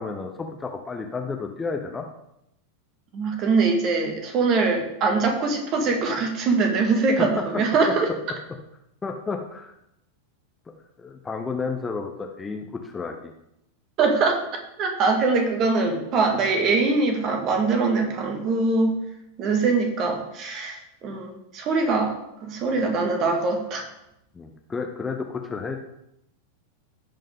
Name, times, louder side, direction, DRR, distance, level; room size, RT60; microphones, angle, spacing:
voice 1, 0.0-2.1 7.2-7.3 9.0-9.7 11.0-13.3 24.3-25.8, left 4 dB, 15° left, 3 dB, 0.9 m, -31 dB
voice 2, 3.1-8.1 14.0-14.5 14.8-19.0 19.4-23.9, right 4 dB, 35° right, 3 dB, 2.0 m, -23 dB
16.0 x 5.4 x 3.7 m, 0.81 s
figure-of-eight pair, 90°, 0 cm